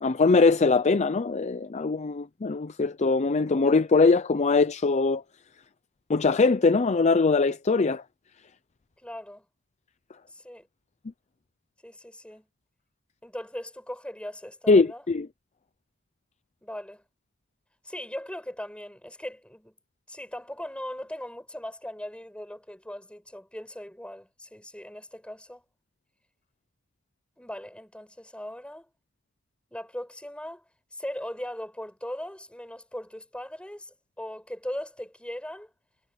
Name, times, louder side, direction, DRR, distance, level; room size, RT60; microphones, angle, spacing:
voice 1, 0.0-5.2 6.1-8.0 14.7-15.3, left 4 dB, 30° left, 0.5 m, -22 dB
voice 2, 9.0-9.4 10.3-10.7 11.8-12.5 13.2-15.0 16.6-17.0 17.8-19.7 20.1-25.6 27.4-28.9 29.7-30.6 30.9-35.7, left 1 dB, 5° left, 6.9 m, -39 dB
head